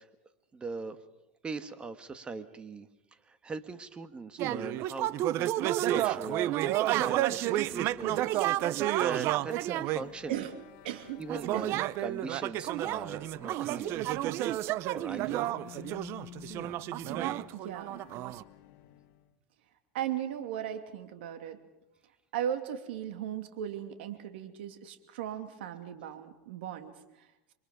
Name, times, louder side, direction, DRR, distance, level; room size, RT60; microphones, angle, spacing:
voice 1, 0.5-1.0 1.4-2.9 3.3-5.1 5.4-6.5 6.9-10.4 11.2-14.0 14.9-15.4, right 4 dB, 15° right, 10 dB, 1.7 m, -40 dB
sound 1, 4.4-10.1 11.3-18.4, right 14 dB, 50° right, 0.8 m, -31 dB
sound 2, 6.4-19.3, left 11 dB, 55° left, 1.8 m, -53 dB
voice 2, 7.6-8.2 10.3-10.6 10.8-11.3 11.5-11.7 17.5-18.0 19.9-21.6 22.3-27.5, right 10 dB, 80° right, 7 dB, 2.7 m, -37 dB
28.0 x 23.5 x 5.3 m, 0.95 s
supercardioid pair, 130°, 6 cm